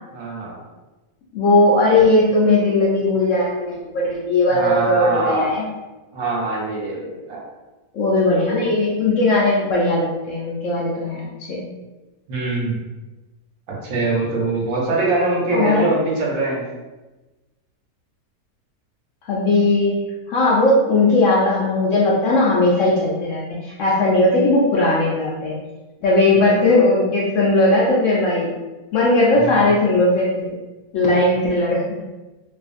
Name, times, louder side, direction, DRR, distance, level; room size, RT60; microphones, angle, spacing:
voice 1, 0.1-0.5 4.5-5.5 6.1-7.4 12.3-12.8 13.8-16.6 26.3-26.5 29.3-29.6, right 2 dB, 70° right, -3 dB, 1.0 m, -23 dB
voice 2, 1.3-5.7 7.9-11.6 15.5-15.9 19.3-20.0 20.3-25.6 26.0-28.5 28.9-30.5 30.9-31.8, left 2 dB, 70° left, -5 dB, 0.8 m, -18 dB
2.5 x 2.5 x 2.4 m, 1.1 s
omnidirectional pair, 1.6 m